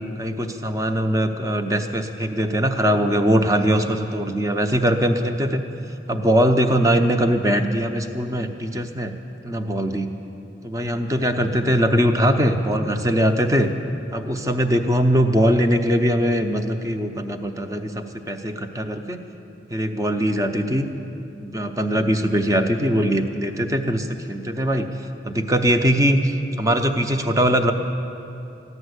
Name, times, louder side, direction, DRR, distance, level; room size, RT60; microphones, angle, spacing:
voice 1, 0.2-5.6 6.1-9.1 9.4-10.1 10.6-13.7 14.1-19.2 19.7-20.9 21.4-24.9 25.2-26.3 26.6-27.7, equal, 20° right, 6 dB, 0.7 m, -21 dB
14.5 x 11.0 x 8.1 m, 2.7 s
head